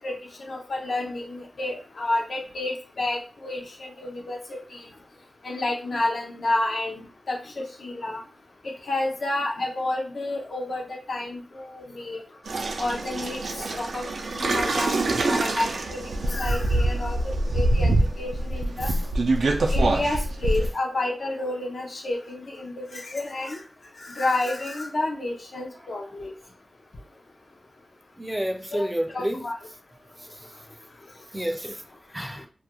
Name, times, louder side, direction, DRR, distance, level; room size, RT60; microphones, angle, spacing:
voice 1, 0.5-4.8 5.4-7.0 7.3-8.2 8.9-12.2 12.8-13.4 13.7-14.1 14.4-16.0 16.3-17.2 17.5-17.9 18.2-18.9 19.7-23.6 24.0-26.3 28.7-28.9 29.1-29.5, left 2 dB, 70° left, 0.5 m, -30 dB
sound 1, 12.5-20.7, right 2 dB, 85° right, 0.3 m, -25 dB
voice 2, 28.2-29.4 31.3-31.8 32.1-32.4, equal, 10° right, 0.4 m, -29 dB
2.3 x 2.1 x 2.9 m
wide cardioid pair, 65°, 0 cm